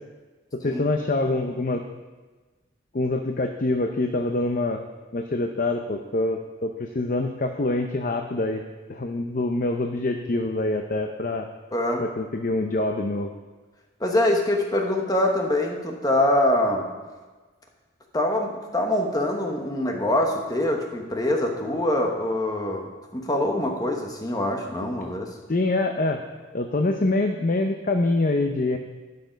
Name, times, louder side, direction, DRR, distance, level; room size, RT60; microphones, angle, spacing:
voice 1, 0.6-1.8 2.9-4.8 5.1-8.6 8.9-11.5 12.0-13.3 25.5-26.2 26.5-28.8, left 2 dB, 40° left, 4 dB, 0.6 m, -25 dB
voice 2, 11.7-12.0 14.0-16.9 18.1-25.3, left 1 dB, 20° left, 2 dB, 1.1 m, -24 dB
11.5 x 6.8 x 5.2 m, 1.3 s
head